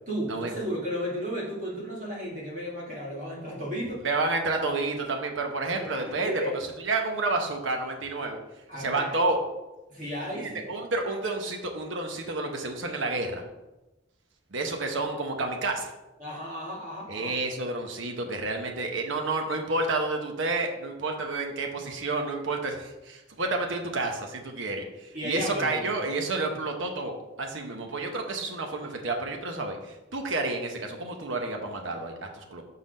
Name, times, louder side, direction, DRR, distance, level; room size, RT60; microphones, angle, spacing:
voice 1, 0.1-4.0 5.7-6.6 8.7-9.1 9.9-10.7 16.2-17.3 25.1-26.1, equal, 40° right, -4 dB, 1.8 m, -34 dB
voice 2, 4.0-6.3 6.8-8.4 8.8-9.4 10.4-13.4 14.5-15.9 17.1-32.6, right 2 dB, 75° right, 3 dB, 0.9 m, -30 dB
5.8 x 4.0 x 5.2 m, 1.0 s
head